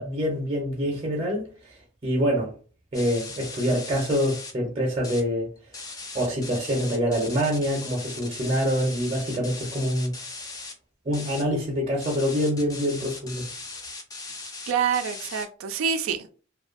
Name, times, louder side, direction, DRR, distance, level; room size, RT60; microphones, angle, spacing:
voice 1, 0.0-1.7 2.0-2.5 2.9-5.5 6.1-10.1 11.1-13.5, equal, 30° right, 0.6 m, -26 dB
sound 1, 2.9-4.5 4.9-5.2 5.6-10.7 11.1-11.4 12.0-15.5, left 3 dB, 20° left, 0.4 m, -39 dB
voice 2, 14.7-16.3, right 7 dB, 90° right, 0.4 m, -26 dB
2.5 x 2.3 x 2.4 m
head